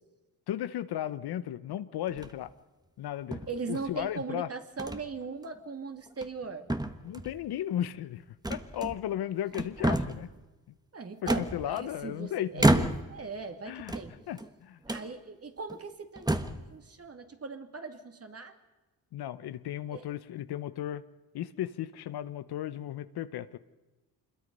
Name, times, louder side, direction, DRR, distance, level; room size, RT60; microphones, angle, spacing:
voice 1, 0.5-2.5 3.0-4.5 7.0-8.2 8.5-10.3 10.7-10.8 11.3-12.8 13.6-13.9 14.3-14.8 19.1-21.0 21.3-23.6, left 11 dB, 75° left, 14 dB, 1.0 m, -35 dB
sound 1, 2.1-2.5 3.3-4.1 4.8-5.0 5.4-5.6 6.1-6.4 6.7-7.4 8.4-9.2 9.5-10.3 11.3-12.1 12.6-13.2 13.8-14.5 14.9-15.1 15.7-15.8 16.2-16.7, right 1 dB, 10° right, 1.4 m, -30 dB
voice 2, 3.5-6.7 9.8-10.0 10.9-14.1 14.9-18.5 19.9-20.0, right 4 dB, 35° right, 6 dB, 2.5 m, -39 dB
25.5 x 22.0 x 5.5 m, 1.1 s
cardioid pair, 70°, 39 cm